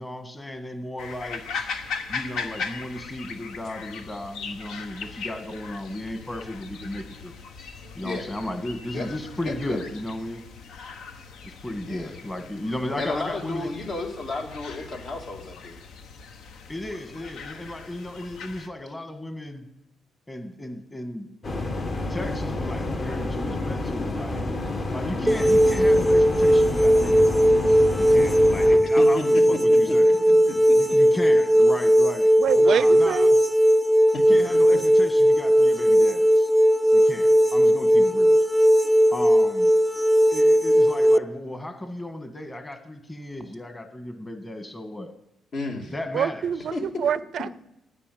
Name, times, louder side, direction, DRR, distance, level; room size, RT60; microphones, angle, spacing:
voice 1, 0.0-1.4 2.1-7.3 7.9-10.5 11.4-13.7 16.7-19.7 20.3-21.3 22.1-24.4 24.9-30.1 30.7-33.3 34.1-36.5 36.9-38.4 39.1-39.7 40.3-45.1 45.9-46.5, left 1 dB, 15° left, 7 dB, 1.6 m, -35 dB
sound 1, 1.0-18.7, left 5 dB, 80° left, 1.0 m, -39 dB
voice 2, 9.4-9.8 11.8-12.1 13.0-15.8 29.0-30.1 30.4-31.0 34.3-34.4 45.5-45.9 46.7-46.8, left 2 dB, 60° left, 2 dB, 2.4 m, -32 dB
sound 2, 21.4-28.8, left 2 dB, 45° left, 1.7 m, -29 dB
sound 3, 25.3-41.2, equal, 5° right, 0.4 m, -18 dB
voice 3, 32.4-33.3 46.1-47.5, right 8 dB, 65° right, 17 dB, 0.4 m, -26 dB
10.0 x 9.8 x 8.4 m, 0.90 s
cardioid pair, 90°, 0 cm